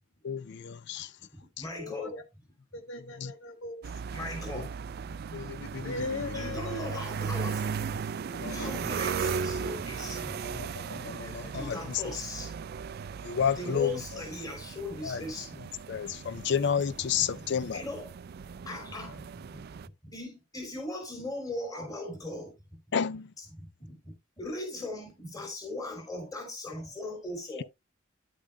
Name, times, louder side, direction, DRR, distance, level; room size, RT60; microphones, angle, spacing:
voice 1, 0.2-1.1 1.6-1.7 3.2-3.3 4.5-4.7 5.3-6.3 8.3-9.0 10.4-12.0 13.2-14.2 15.0-15.2 15.6-17.8 22.9-23.3, left 7 dB, 60° left, 0.4 m, -32 dB
voice 2, 1.2-2.1 4.1-4.7 5.1-5.2 5.6-6.0 6.3-7.7 8.5-10.4 11.0-11.2 11.5-12.5 13.6-15.6 17.2-18.1 18.6-19.2 19.5-19.6 20.0-22.8 23.5-27.6, left 2 dB, 20° left, 3.2 m, -39 dB
voice 3, 1.8-2.2 2.7-4.3 5.4-5.5 5.8-7.0 8.3-8.7 11.2-11.5, left 3 dB, 80° left, 1.4 m, -39 dB
sound 1, 3.8-19.9, right 6 dB, 50° right, 0.4 m, -37 dB
10.0 x 8.6 x 2.2 m
head